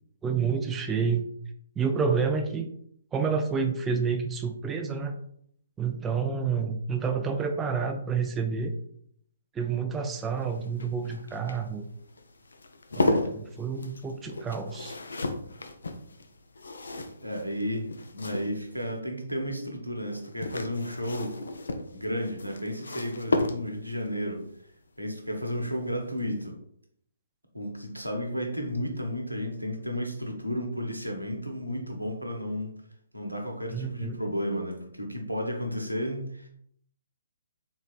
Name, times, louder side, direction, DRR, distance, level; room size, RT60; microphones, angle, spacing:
voice 1, 0.2-1.3 1.8-2.7 3.1-5.1 5.8-8.7 9.5-11.8 13.0-15.0 33.7-34.2, right 5 dB, 10° right, 5 dB, 0.3 m, -29 dB
sound 1, 10.1-18.9 20.1-24.0 25.6-25.9 26.2-26.3, left 2 dB, 65° left, 0.4 m, -34 dB
voice 2, 17.2-21.4 21.9-24.5 25.0-26.6 27.5-32.8 33.1-36.5, equal, 90° right, 2 dB, 0.8 m, -33 dB
3.7 x 3.0 x 2.4 m, 0.67 s
figure-of-eight pair, 130°, 0 cm